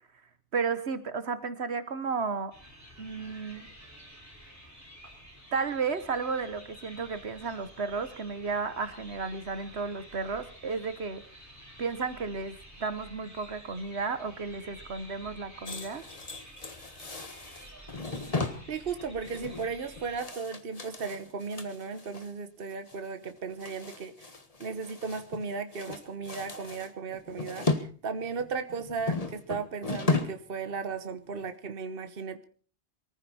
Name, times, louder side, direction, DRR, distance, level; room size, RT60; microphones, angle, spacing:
voice 1, 0.5-2.5 3.0-3.7 5.5-11.2 11.8-16.0, right 5 dB, 75° right, 12 dB, 1.5 m, -33 dB
sound 1, 2.5-20.2, equal, 15° right, 5.5 m, -51 dB
sound 2, 15.7-22.3 22.7-23.0 23.2-25.5 25.7-27.9 28.2-30.5 30.8-31.0 31.4-31.5, left 3 dB, 35° left, 1.6 m, -35 dB
voice 2, 18.7-24.1 24.6-32.4, right 5 dB, 60° right, 9 dB, 1.4 m, -36 dB
23.0 x 14.5 x 4.3 m, 0.42 s
omnidirectional pair, 1.1 m